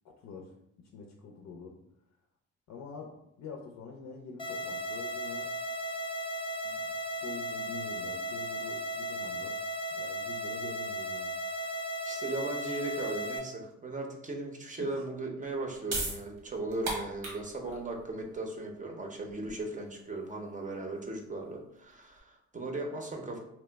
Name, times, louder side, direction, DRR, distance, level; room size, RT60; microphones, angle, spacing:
voice 1, 0.2-0.5 0.9-1.7 2.7-3.1 3.4-5.5 6.6-6.8 7.2-9.6 9.9-11.3 14.8-15.0, left 5 dB, 65° left, 1 dB, 0.5 m, -45 dB
sound 1, 4.4-13.4, equal, 15° left, 0.6 m, -36 dB
voice 2, 12.0-23.4, right 2 dB, 25° right, 1 dB, 0.6 m, -37 dB
sound 2, 15.4-22.2, right 2 dB, 90° right, 1.2 m, -40 dB
2.9 x 2.1 x 3.3 m, 0.81 s
cardioid pair, 90°, 30 cm